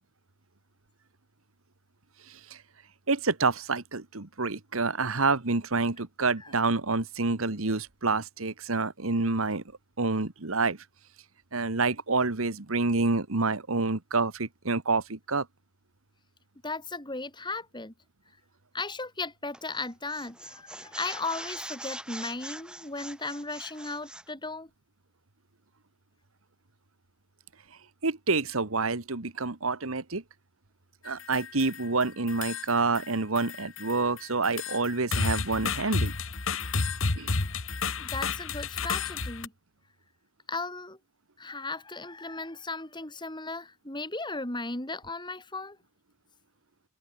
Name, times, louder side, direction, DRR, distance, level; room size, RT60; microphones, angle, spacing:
voice 1, 2.3-2.6 3.1-9.6 10.0-10.8 11.5-15.5 28.0-30.2 31.0-36.1 37.1-37.4, right 3 dB, 75° right, 1.7 m, -28 dB
voice 2, 16.6-17.9 18.7-24.7 38.0-39.5 40.5-41.0 41.4-45.8, left 3 dB, 20° left, 3.6 m, -36 dB
sound 1, 19.5-19.8 20.1-24.3, right 1 dB, 5° right, 5.9 m, -42 dB
sound 2, 31.1-31.9 32.3-33.1 33.4-39.5, left 4 dB, 65° left, 1.7 m, -31 dB
open air
head